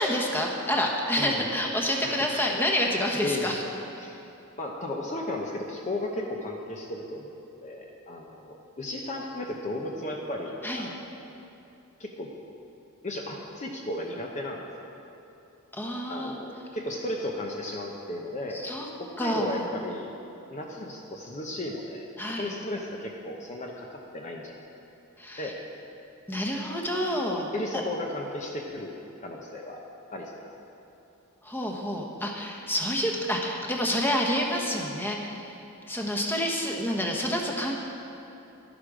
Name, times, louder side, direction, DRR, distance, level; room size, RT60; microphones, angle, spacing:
voice 1, 0.0-3.6 10.6-10.9 15.7-16.4 18.5-18.9 19.2-19.6 22.2-22.6 25.2-25.5 26.3-27.5 31.4-35.6 35.9-37.8, equal, 10° left, 0 dB, 1.1 m, -28 dB
voice 2, 1.2-1.5 2.0-2.5 3.2-3.5 4.0-4.2 4.6-7.3 7.6-11.1 12.0-12.3 13.0-14.6 16.1-18.6 19.0-20.1 20.5-22.1 22.4-24.5 25.4-25.5 27.5-29.0 29.2-29.8 30.1-30.4, left 1 dB, 35° left, 0 dB, 0.8 m, -34 dB
12.0 x 11.0 x 5.0 m, 2.9 s
head